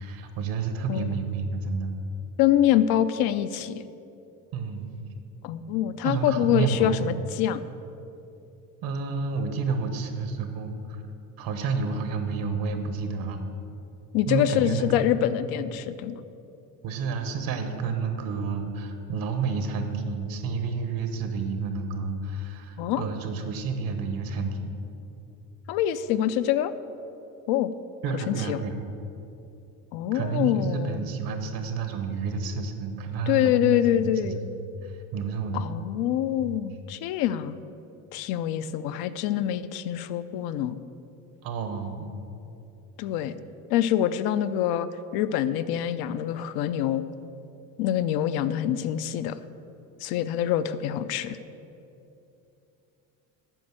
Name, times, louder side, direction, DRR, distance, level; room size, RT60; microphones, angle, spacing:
voice 1, 0.0-1.9 4.5-4.9 6.0-7.0 8.8-11.0 11.4-13.4 14.3-15.0 16.8-24.7 28.0-28.8 30.1-35.7 36.4-36.6 41.4-42.1, right 4 dB, 65° right, 7 dB, 1.2 m, -30 dB
voice 2, 0.9-1.3 2.4-3.8 5.4-7.7 14.1-16.1 22.8-23.0 25.7-26.7 27.5-27.7 28.3-28.6 29.9-31.0 33.3-34.4 35.5-37.6 38.1-40.8 43.0-43.3 43.7-44.9 45.1-47.0 47.8-49.4 50.0-51.4, left 11 dB, 75° left, 12 dB, 0.6 m, -25 dB
9.2 x 5.4 x 7.4 m, 2.8 s
cardioid pair, 120°, 37 cm